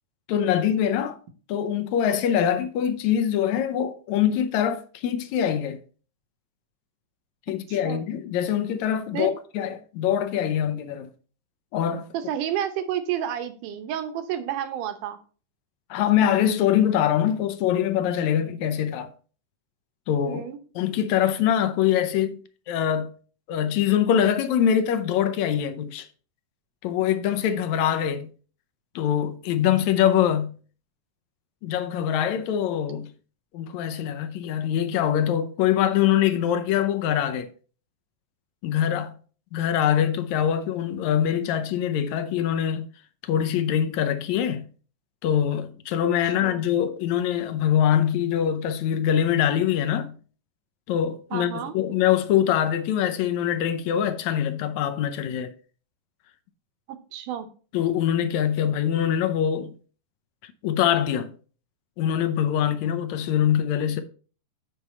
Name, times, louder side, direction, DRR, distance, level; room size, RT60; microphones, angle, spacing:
voice 1, 0.3-1.2 1.5-5.8 7.5-11.1 11.7-12.1 15.9-19.1 20.1-20.4 20.8-22.4 22.7-23.1 23.5-26.1 26.8-28.3 29.0-30.5 31.6-33.1 33.5-37.5 38.6-39.2 39.5-42.8 43.2-44.7 45.2-50.1 50.9-55.5 57.7-59.7 60.4-61.3 62.0-64.0, left 9 dB, 75° left, 1.8 m, -23 dB
voice 2, 7.7-8.0 9.1-9.3 12.1-15.2 20.2-20.6 46.2-46.6 51.3-51.7 56.9-57.5, right 10 dB, 80° right, 2.4 m, -30 dB
8.1 x 5.3 x 4.2 m
omnidirectional pair, 3.7 m